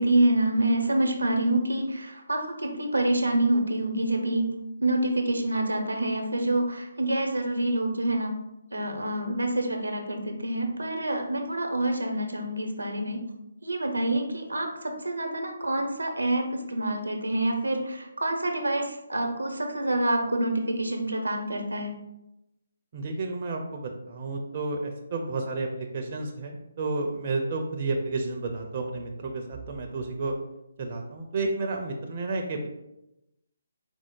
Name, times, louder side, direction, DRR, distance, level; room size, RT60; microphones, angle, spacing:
voice 1, 0.0-4.5 4.8-8.3 8.7-13.2 13.6-21.9, right 1 dB, 85° right, 3 dB, 0.7 m, -27 dB
voice 2, 22.9-30.3 30.8-32.7, right 3 dB, 35° right, 2 dB, 0.5 m, -31 dB
4.4 x 2.1 x 4.5 m, 0.90 s
figure-of-eight pair, 145°, 0 cm